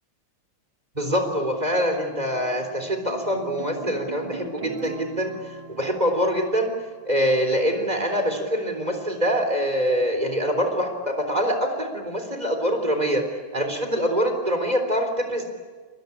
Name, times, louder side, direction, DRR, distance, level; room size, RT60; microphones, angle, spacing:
voice 1, 1.0-6.7 7.1-13.2 13.5-15.4, equal, 20° right, 5 dB, 3.8 m, -24 dB
sound 1, 1.6-7.0, right 3 dB, 85° right, 3.0 m, -39 dB
28.5 x 22.0 x 8.6 m, 1.5 s
omnidirectional pair, 2.3 m